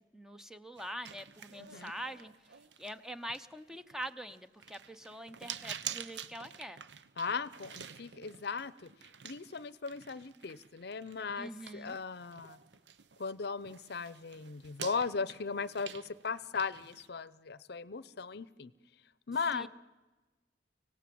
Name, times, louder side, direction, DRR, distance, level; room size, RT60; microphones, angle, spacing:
voice 1, 0.0-2.3 2.8-6.8 11.4-12.0 19.5-19.7, equal, 5° right, 11 dB, 0.7 m, -44 dB
sound 1, 0.8-13.4 13.6-17.1, right 8 dB, 85° right, 0.9 m, -48 dB
voice 2, 1.6-1.9 7.2-8.9 9.2-12.6 13.2-18.7 19.3-19.7, left 5 dB, 65° left, 18 dB, 0.7 m, -37 dB
25.0 x 17.5 x 7.7 m, 1.2 s
head